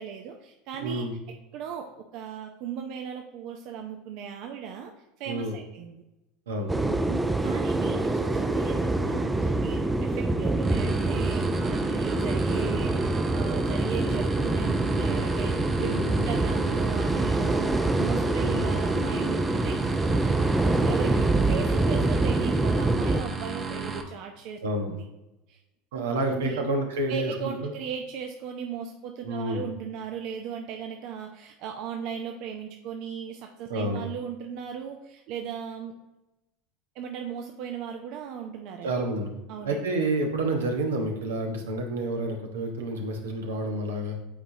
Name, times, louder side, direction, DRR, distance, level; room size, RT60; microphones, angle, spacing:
voice 1, 0.0-6.0 7.1-15.9 16.2-17.7 18.0-20.1 20.8-24.6 24.9-25.1 25.5-25.6 25.9-26.6 27.1-36.0 37.0-38.9 39.5-39.9, right 7 dB, 60° right, 4 dB, 0.5 m, -37 dB
voice 2, 0.8-1.1 5.3-5.5 6.5-6.7 15.8-16.2 18.4-18.6 24.6-24.9 25.9-27.7 29.2-29.6 33.7-34.0 38.8-39.3 39.6-44.2, right 1 dB, 85° right, 3 dB, 1.0 m, -29 dB
sound 1, 6.7-23.2, right 2 dB, 10° right, 0.4 m, -25 dB
sound 2, 10.6-24.0, right 4 dB, 30° right, 0.8 m, -34 dB
8.6 x 4.1 x 2.7 m, 0.97 s
hypercardioid pair, 85°, 0 cm